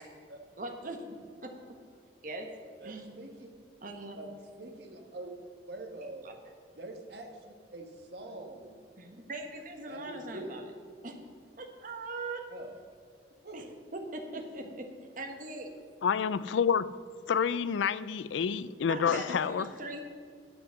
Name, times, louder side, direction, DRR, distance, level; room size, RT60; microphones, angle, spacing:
voice 1, 0.6-1.0 1.4-1.5 2.2-2.5 2.8-3.1 3.8-4.2 6.2-6.4 9.0-10.7 11.0-11.1 11.6-12.5 13.5-13.6 13.9-14.9 15.2-15.7 18.9-20.0, right 2 dB, 45° right, 4 dB, 1.4 m, -40 dB
voice 2, 2.8-3.3 4.1-4.3 4.6-5.3 5.7-6.2 6.7-8.8 9.9-10.4 12.5-12.7 13.4-13.5, right 2 dB, 60° right, 3 dB, 1.5 m, -44 dB
voice 3, 16.0-16.9 17.3-19.7, left 7 dB, 85° left, 17 dB, 0.4 m, -28 dB
10.0 x 7.9 x 6.3 m, 2.1 s
head